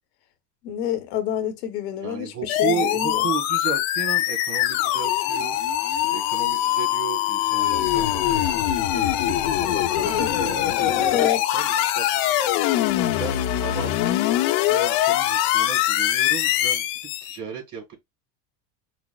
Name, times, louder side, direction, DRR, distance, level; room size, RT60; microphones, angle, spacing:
voice 1, 0.6-3.3 11.1-11.4, left 10 dB, 85° left, 1.0 m, -27 dB
voice 2, 2.0-5.6 6.1-12.0 13.2-14.0 14.7-16.9 17.2-17.9, right 7 dB, 40° right, 2.8 m, -34 dB
sound 1, 2.5-17.4, left 13 dB, 65° left, 0.7 m, -23 dB
6.0 x 2.0 x 2.3 m
supercardioid pair, 115°, 47 cm